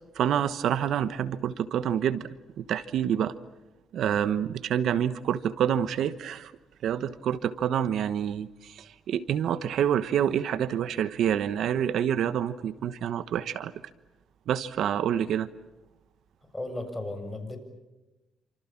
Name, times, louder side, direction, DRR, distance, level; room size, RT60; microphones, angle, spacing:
voice 1, 0.1-2.3 2.6-3.3 3.9-6.5 6.8-13.7 14.5-15.5, right 9 dB, 75° right, 14 dB, 1.1 m, -27 dB
voice 2, 16.5-17.6, left 2 dB, 10° left, 6 dB, 7.4 m, -35 dB
29.0 x 27.0 x 7.3 m, 1.0 s
cardioid pair, 90°, 0 cm